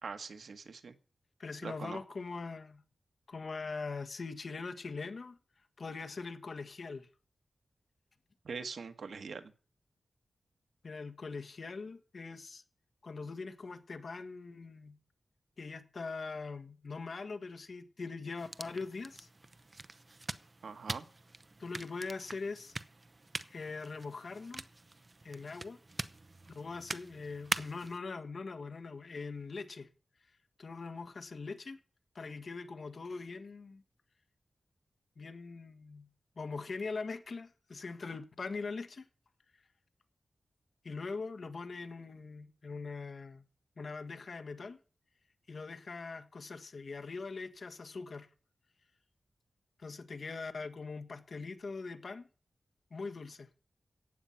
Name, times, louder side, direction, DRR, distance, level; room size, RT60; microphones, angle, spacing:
voice 1, 0.0-0.9 1.6-2.0 8.4-9.5 20.6-21.0, right 5 dB, 85° right, 1.4 m, -42 dB
voice 2, 1.4-2.8 3.3-5.4 5.8-7.1 10.8-12.6 13.0-15.0 15.6-19.3 21.6-22.7 23.5-24.6 25.2-25.8 26.5-29.9 30.6-31.8 32.1-33.8 35.2-36.1 36.4-39.0 40.8-43.4 43.8-44.8 45.5-48.3 49.8-52.3 52.9-53.5, left 4 dB, 55° left, 1.5 m, -42 dB
sound 1, 18.4-28.0, right 2 dB, 30° right, 0.7 m, -44 dB
15.0 x 9.2 x 5.8 m
wide cardioid pair, 145°, 0 cm